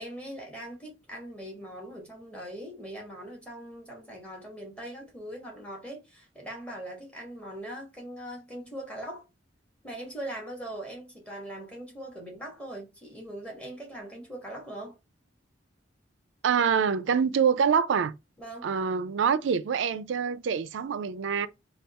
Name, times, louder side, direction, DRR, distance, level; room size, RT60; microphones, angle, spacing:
voice 1, 0.0-9.2 9.8-15.0 18.4-18.7, right 1 dB, 5° left, 1.2 m, -41 dB
voice 2, 16.4-18.1 18.6-21.5, right 6 dB, 75° right, 0.4 m, -25 dB
3.4 x 2.3 x 4.0 m
head